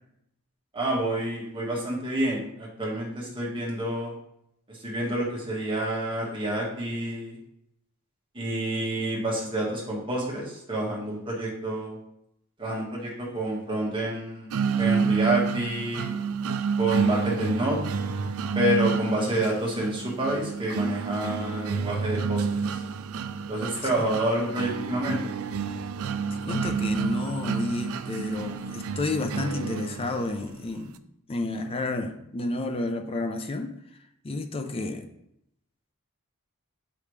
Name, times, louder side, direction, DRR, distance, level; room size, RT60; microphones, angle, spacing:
voice 1, 0.7-4.1 4.8-7.4 8.3-11.9 12.6-14.5 14.8-16.1 16.8-17.8 18.5-22.6 23.5-25.2, right 1 dB, 25° right, -4 dB, 1.7 m, -28 dB
sound 1, 14.5-30.5, right 5 dB, 65° right, 0.4 m, -29 dB
voice 2, 26.5-31.0 31.3-33.7 34.2-35.1, left 2 dB, 25° left, 6 dB, 0.5 m, -31 dB
7.0 x 5.1 x 3.2 m, 0.76 s
head